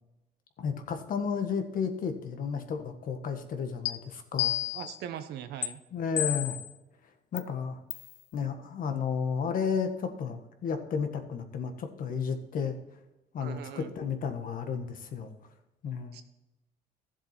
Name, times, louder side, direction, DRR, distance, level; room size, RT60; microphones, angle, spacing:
voice 1, 0.6-4.6 5.9-6.6 7.3-7.8 8.3-12.7 13.3-15.3 15.8-16.2, left 6 dB, 55° left, 7 dB, 1.5 m, -32 dB
sound 1, 3.9-4.0 4.4-5.0 5.6-5.7 6.2-6.7 7.4-7.5 7.9-8.1, left 12 dB, 90° left, 0.7 m, -30 dB
voice 2, 4.7-5.8 13.4-13.9 16.1-16.3, right 10 dB, 75° right, 9 dB, 1.1 m, -40 dB
13.5 x 7.4 x 4.4 m, 0.96 s
cardioid pair, 110°, 17 cm